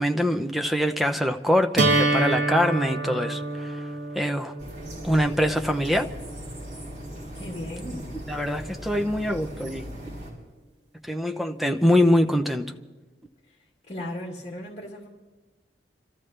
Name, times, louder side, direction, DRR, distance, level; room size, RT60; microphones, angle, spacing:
voice 1, 0.0-3.8 4.1-4.5 5.0-6.1 8.3-9.9 11.0-12.7, equal, ahead, 5 dB, 0.7 m, -24 dB
sound 1, 1.8-7.7, right 2 dB, 90° right, 1.8 m, -28 dB
sound 2, 4.6-10.3, equal, 45° right, 5.9 m, -38 dB
voice 2, 7.3-8.1 13.5-13.6 13.9-15.1, left 1 dB, 35° left, -1 dB, 2.3 m, -36 dB
27.5 x 14.0 x 3.3 m, 1.3 s
head